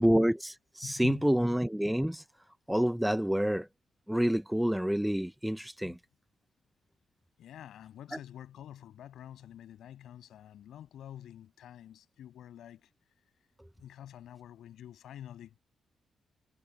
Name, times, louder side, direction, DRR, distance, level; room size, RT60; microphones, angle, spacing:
voice 1, 0.0-2.2 2.7-3.7 4.1-6.0, equal, ahead, 0.6 m, -28 dB
voice 2, 0.8-1.4 5.8-6.0 7.4-12.9 13.8-15.6, left 11 dB, 90° left, 7.9 m, -47 dB
wide cardioid pair, 155°, 0 cm